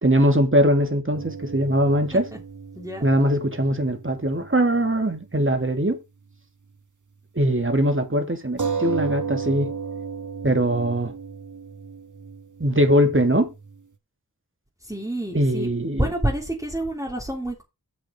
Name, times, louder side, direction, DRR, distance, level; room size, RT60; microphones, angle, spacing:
voice 1, 0.0-2.3 3.0-6.0 7.3-9.7 10.4-11.1 12.6-13.5 15.3-16.1, equal, 35° right, 2.4 m, -21 dB
sound 1, 1.1-5.0 5.3-5.4 8.6-13.8, right 5 dB, 55° right, 1.3 m, -34 dB
voice 2, 2.7-3.0 14.8-17.6, right 1 dB, 10° right, 3.1 m, -28 dB
8.8 x 5.7 x 5.7 m
wide cardioid pair, 50°, 36 cm